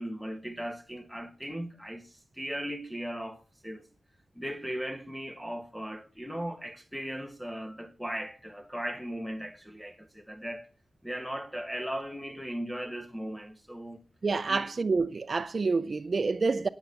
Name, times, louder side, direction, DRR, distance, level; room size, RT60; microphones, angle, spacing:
voice 1, 0.0-3.8 4.3-10.7 11.0-14.0 14.5-14.7, equal, ahead, 1.6 m, -37 dB
voice 2, 14.2-16.7, right 4 dB, 45° right, 0.6 m, -28 dB
18.0 x 7.1 x 6.6 m
wide cardioid pair, 140°, 0 cm